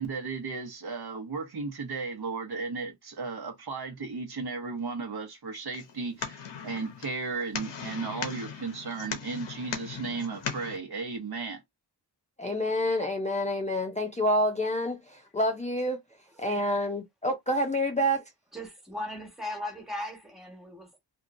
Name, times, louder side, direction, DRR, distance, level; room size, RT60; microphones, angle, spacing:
voice 1, 0.0-6.4 6.6-11.6, right 4 dB, 65° right, 1.0 m, -35 dB
sound 1, 5.7-10.8, left 6 dB, 85° left, 0.8 m, -38 dB
voice 2, 12.4-16.0 16.4-18.2, equal, 15° left, 0.6 m, -28 dB
voice 3, 18.5-21.0, left 1 dB, ahead, 1.3 m, -38 dB
2.9 x 2.6 x 2.6 m
wide cardioid pair, 80°, 42 cm